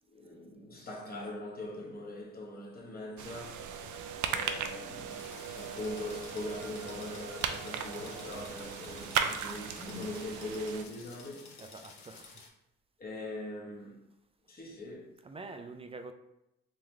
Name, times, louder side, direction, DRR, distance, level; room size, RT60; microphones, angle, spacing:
voice 1, 0.1-4.0 4.3-11.6 13.0-14.1 14.5-15.1, left 1 dB, 30° left, 1.0 m, -41 dB
sound 1, 3.2-10.8, right 7 dB, 80° right, 0.4 m, -37 dB
sound 2, 3.4-8.7, right 4 dB, 65° right, 0.9 m, -47 dB
sound 3, 5.1-12.5, left 4 dB, 70° left, 0.8 m, -53 dB
voice 2, 11.6-12.5 15.2-16.1, right 3 dB, 20° right, 0.3 m, -46 dB
3.8 x 2.9 x 3.1 m
cardioid pair, 90°, 30 cm